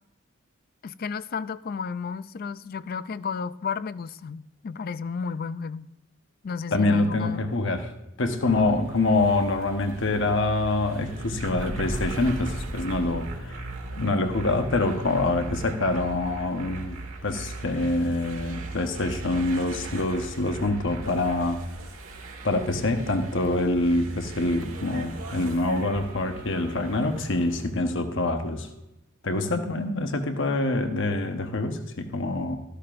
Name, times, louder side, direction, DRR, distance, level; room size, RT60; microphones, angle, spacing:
voice 1, 0.8-5.9 6.4-7.4 8.4-8.7, left 5 dB, 45° left, 0.4 m, -33 dB
voice 2, 6.7-7.9 8.2-17.0 17.2-21.6 22.4-28.7 29.2-32.6, left 2 dB, 60° left, 1.1 m, -25 dB
sound 1, 8.5-27.7, right 2 dB, 70° right, 1.7 m, -38 dB
13.5 x 12.0 x 2.5 m
head